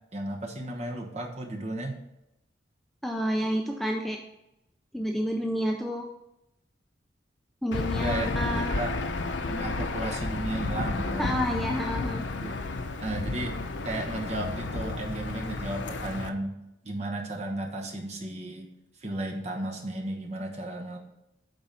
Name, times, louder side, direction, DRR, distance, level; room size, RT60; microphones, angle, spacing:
voice 1, 0.1-2.0 8.0-8.9 9.5-11.4 12.4-12.6 13.0-13.6 13.8-16.5 16.8-18.7 19.0-21.0, right 1 dB, 35° right, 1 dB, 1.2 m, -34 dB
voice 2, 3.0-4.2 4.9-6.1 7.6-8.7 11.2-12.3, equal, ahead, 1 dB, 0.5 m, -29 dB
Aircraft / Engine, 7.7-16.3, left 3 dB, 80° left, 0.7 m, -32 dB
9.0 x 4.1 x 5.5 m, 0.89 s
head